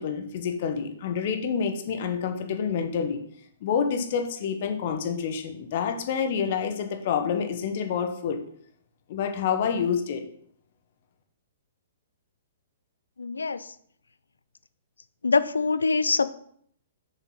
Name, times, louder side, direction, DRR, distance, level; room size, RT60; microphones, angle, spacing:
voice 1, 0.0-3.2 3.6-8.4 9.1-10.2, left 7 dB, 45° left, 6 dB, 1.1 m, -28 dB
voice 2, 13.2-13.6 15.2-16.3, left 4 dB, 70° left, 14 dB, 0.5 m, -24 dB
6.9 x 6.3 x 5.6 m, 0.64 s
figure-of-eight pair, 115°, 0 cm